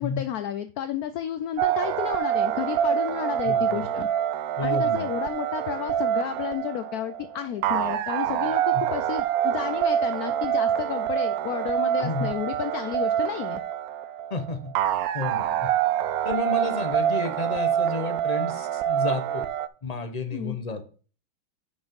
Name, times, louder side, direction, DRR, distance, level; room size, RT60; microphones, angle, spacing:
voice 1, 0.0-4.1 4.6-13.6 20.3-20.6, left 10 dB, 75° left, 11 dB, 0.8 m, -32 dB
sound 1, 1.6-19.7, right 10 dB, 85° right, 0.8 m, -26 dB
voice 2, 3.4-3.9 4.6-5.1 8.7-8.8 12.0-12.3 14.3-14.7 15.1-15.7 16.2-19.4 19.8-20.8, left 3 dB, 40° left, 7 dB, 0.5 m, -31 dB
6.1 x 6.0 x 5.1 m, 0.38 s
omnidirectional pair, 2.1 m